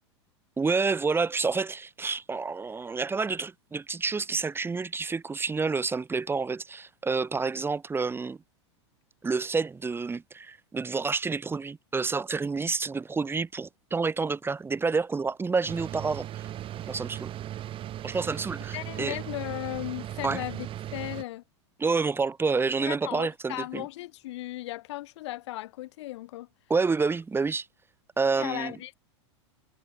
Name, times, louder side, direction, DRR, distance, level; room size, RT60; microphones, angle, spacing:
voice 1, 0.6-8.4 9.2-16.5 16.9-17.3 18.0-19.2 20.2-20.4 21.8-23.8 26.7-27.7 28.2-28.7, right 4 dB, 15° right, 3.3 m, -29 dB
sound 1, 15.7-21.2, right 12 dB, 35° right, 2.6 m, -38 dB
voice 2, 18.7-20.7 20.9-21.4 22.8-26.5 28.4-28.9, left 17 dB, 70° left, 2.4 m, -36 dB
hypercardioid pair, 105°, 15 cm